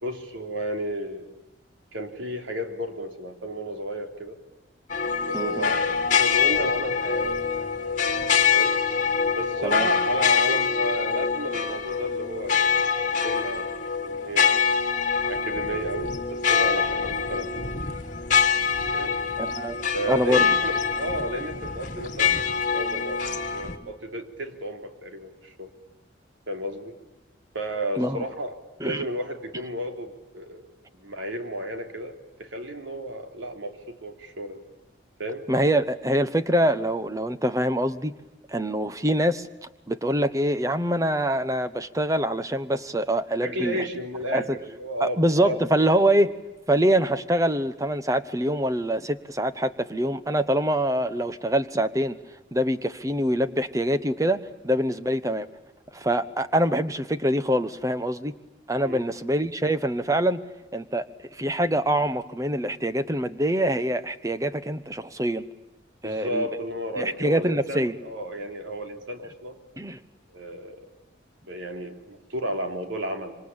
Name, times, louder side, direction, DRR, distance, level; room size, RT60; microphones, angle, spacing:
voice 1, 0.0-1.3 1.9-4.4 5.1-7.7 8.5-8.8 9.4-13.7 14.0-14.6 15.3-17.7 18.9-19.2 19.9-23.2 23.5-25.7 26.5-27.0 27.5-30.6 30.9-32.1 32.4-34.6 35.2-35.4 43.4-45.6 58.8-59.0 66.0-69.6 70.3-70.8 71.5-73.4, equal, 85° right, 5 dB, 3.4 m, -33 dB
sound 1, 4.9-23.8, left 6 dB, 45° left, 2.1 m, -25 dB
voice 2, 5.3-5.7 9.6-9.9 19.4-19.8 20.1-20.5 28.0-28.2 28.8-29.0 35.5-38.1 38.5-39.5 39.9-43.9 44.3-44.6 45.0-46.3 46.7-52.2 52.5-55.5 55.9-58.3 58.7-60.4 60.7-61.1 61.3-65.4 66.0-66.5 67.0-67.9 69.8-70.0, right 1 dB, 15° right, 12 dB, 1.0 m, -24 dB
26.5 x 25.0 x 8.9 m, 1.0 s
head